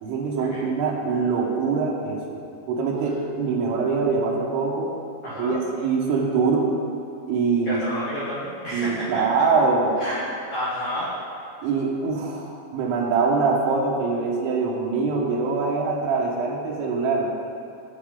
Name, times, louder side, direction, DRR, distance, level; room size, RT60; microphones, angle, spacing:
voice 1, 0.0-2.4 2.7-4.9 5.4-6.7 7.3-7.8 8.7-10.0 11.6-17.3, right 4 dB, 85° right, -2 dB, 3.7 m, -23 dB
voice 2, 5.2-5.6 7.6-9.2 10.0-10.2 10.5-11.1, left 1 dB, 80° left, -9 dB, 1.6 m, -30 dB
16.0 x 5.7 x 3.8 m, 2.7 s
omnidirectional pair, 5.6 m